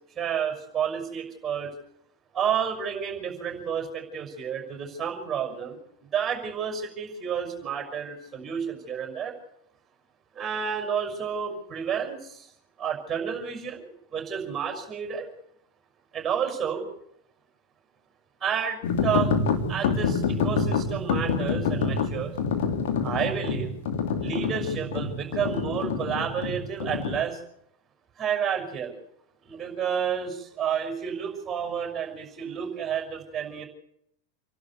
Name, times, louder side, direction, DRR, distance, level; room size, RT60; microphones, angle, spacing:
voice 1, 0.2-1.7 2.3-9.3 10.3-12.5 12.8-15.3 16.1-16.8 18.4-19.3 19.7-22.3 23.0-23.7 24.2-27.4 28.2-29.0 29.4-33.6, right 7 dB, 15° right, 4 dB, 6.1 m, -30 dB
sound 1, 18.8-27.2, left 5 dB, 55° left, 2.6 m, -27 dB
27.5 x 12.0 x 8.2 m, 0.74 s
figure-of-eight pair, 90°, 0 cm